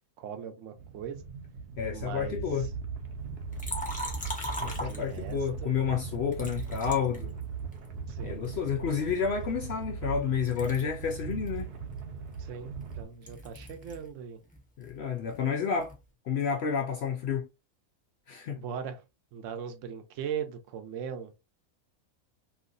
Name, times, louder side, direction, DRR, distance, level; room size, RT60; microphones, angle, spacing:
voice 1, 0.2-1.2 1.9-2.7 4.8-5.7 8.1-8.5 12.4-14.4 18.5-19.0 19.3-21.3, right 8 dB, 65° right, 0.9 m, -39 dB
sound 1, 0.8-13.0, right 5 dB, 90° right, 1.2 m, -39 dB
voice 2, 1.8-2.7 4.6-7.3 8.2-11.7 14.8-15.9 16.2-17.5 18.3-18.6, left 7 dB, 75° left, 0.5 m, -30 dB
Liquid, 3.5-5.5 6.3-7.9 8.4-10.2 10.4-14.1 14.4-16.0, equal, 15° left, 0.3 m, -40 dB
3.0 x 2.8 x 2.5 m
omnidirectional pair, 1.6 m